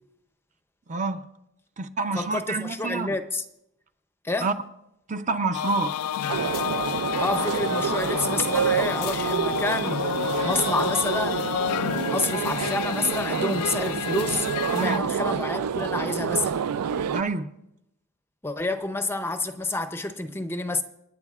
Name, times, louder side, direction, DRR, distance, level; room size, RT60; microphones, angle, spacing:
voice 1, 0.9-1.3 1.8-3.1 4.4-4.5 5.1-6.0 14.8-15.0 17.1-17.5, right 3 dB, 35° right, 0.6 m, -28 dB
voice 2, 2.1-3.4 4.2-4.5 7.2-10.1 10.4-11.5 12.1-16.6 18.4-20.8, left 2 dB, 10° left, 0.6 m, -28 dB
sound 1, 5.5-15.0, left 10 dB, 90° left, 0.3 m, -30 dB
sound 2, 6.3-17.2, right 7 dB, 85° right, 0.4 m, -28 dB
28.0 x 9.9 x 2.4 m
head